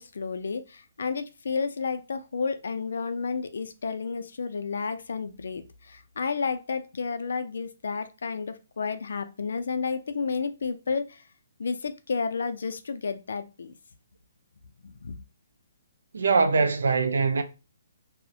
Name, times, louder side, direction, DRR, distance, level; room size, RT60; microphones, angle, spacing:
voice 1, 0.0-11.2 11.6-13.8 14.8-15.2, left 5 dB, 65° left, 0.3 m, -31 dB
voice 2, 16.1-17.4, right 4 dB, 75° right, 0.4 m, -22 dB
2.7 x 2.0 x 2.3 m
hypercardioid pair, 170°, 0 cm